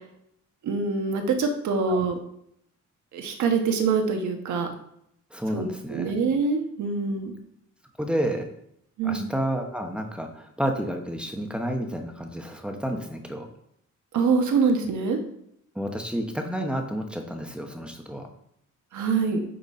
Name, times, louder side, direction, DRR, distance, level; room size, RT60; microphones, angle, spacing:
voice 1, 0.6-2.2 3.1-4.7 5.5-7.3 9.0-9.3 14.1-15.2 18.9-19.4, right 4 dB, 75° right, 4 dB, 1.2 m, -25 dB
voice 2, 5.3-6.1 8.0-8.5 9.0-13.5 15.7-18.3, equal, 5° right, 3 dB, 0.8 m, -30 dB
9.1 x 4.1 x 4.1 m, 0.73 s
cardioid pair, 155°, 30 cm